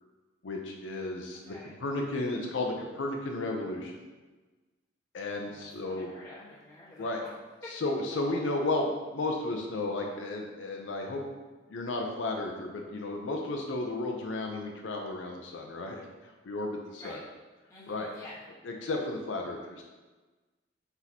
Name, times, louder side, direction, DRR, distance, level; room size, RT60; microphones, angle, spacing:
voice 1, 0.4-3.9 5.1-6.1 7.0-7.2 7.7-11.2 11.7-17.2 17.9-18.1 18.6-19.8, left 2 dB, 85° left, 1 dB, 0.5 m, -33 dB
voice 2, 1.3-1.8 5.2-7.3 7.6-7.7 8.3-8.5 16.9-17.2 17.7-18.5, left 1 dB, 15° left, -8 dB, 1.2 m, -49 dB
4.5 x 4.0 x 2.8 m, 1.3 s
head